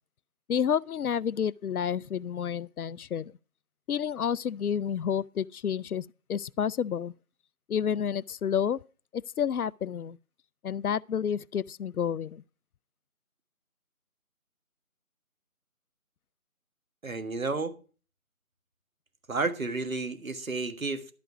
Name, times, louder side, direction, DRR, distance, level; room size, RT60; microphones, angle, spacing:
voice 1, 0.5-3.3 3.9-7.1 7.7-8.8 9.1-10.2 10.6-12.4, left 8 dB, 85° left, 0.5 m, -30 dB
voice 2, 17.0-17.8 19.3-21.1, right 3 dB, 65° right, 1.6 m, -31 dB
11.5 x 5.1 x 6.9 m
figure-of-eight pair, 175°, 43 cm